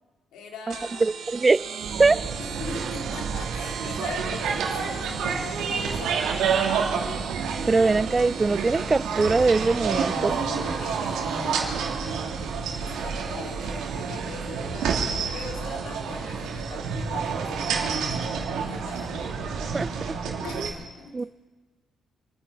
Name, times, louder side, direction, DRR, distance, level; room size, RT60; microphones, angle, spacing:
voice 1, 0.3-1.2 2.4-6.3 10.1-14.9 15.3-18.3 18.6-19.4 20.4-20.6 21.0-21.1, left 4 dB, 85° left, 2 dB, 2.5 m, -41 dB
sound 1, 0.7-19.8, right 7 dB, 70° right, 1.2 m, -40 dB
voice 2, 1.0-1.6 2.0-2.2 7.7-10.3 19.7-19.9 20.6-20.7 21.1-21.2, right 3 dB, 25° right, 18 dB, 0.4 m, -21 dB
sound 2, 1.8-20.7, right 5 dB, 90° right, 2.6 m, -29 dB
28.0 x 9.5 x 5.1 m, 1.3 s
cardioid pair, 90°, 0 cm